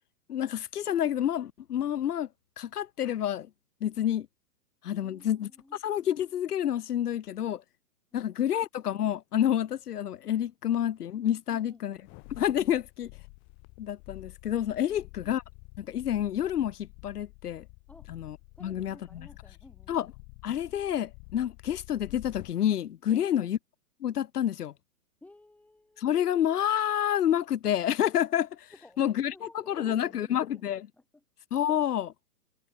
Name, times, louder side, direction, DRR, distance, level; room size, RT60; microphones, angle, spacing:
voice 1, 0.3-2.3 2.6-3.5 3.8-4.3 4.8-5.5 5.8-7.6 8.1-12.0 12.4-13.1 13.8-15.4 15.8-17.6 18.1-18.4 18.6-18.9 19.9-20.1 20.4-23.6 24.0-24.7 26.0-28.5 29.0-29.3 29.7-30.9 31.5-32.1, left 10 dB, 75° left, 1.2 m, -28 dB
voice 2, 5.0-5.8 11.5-12.2 14.9-15.1 17.9-18.1 18.6-20.0 23.1-23.5 25.2-26.1 28.7-30.7 30.9-31.2 31.6-31.9, left 2 dB, 5° left, 6.3 m, -53 dB
sound 1, 12.0-22.6 23.1-23.2, left 38 dB, 25° left, 3.3 m, -50 dB
hypercardioid pair, 155°, 47 cm